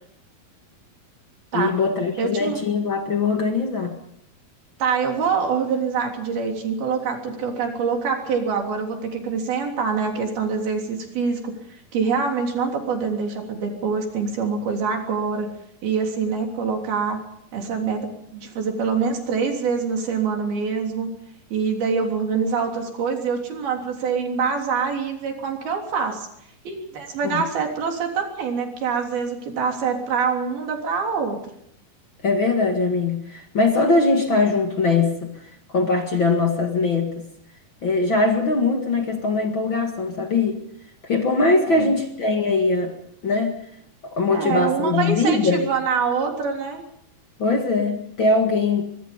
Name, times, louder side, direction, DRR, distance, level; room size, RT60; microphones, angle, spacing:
voice 1, 1.5-4.0 27.2-27.4 32.2-35.4 35.7-37.3 37.8-40.6 41.0-43.0 43.2-43.6 44.0-45.6 47.4-48.8, left 3 dB, 40° left, 3 dB, 2.1 m, -21 dB
voice 2, 2.2-2.6 4.8-15.5 15.8-17.2 17.5-21.1 21.5-26.3 26.7-31.4 41.7-41.9 44.3-46.8, right 5 dB, 85° right, 2 dB, 5.3 m, -25 dB
24.5 x 22.5 x 5.4 m, 0.75 s
omnidirectional pair, 4.2 m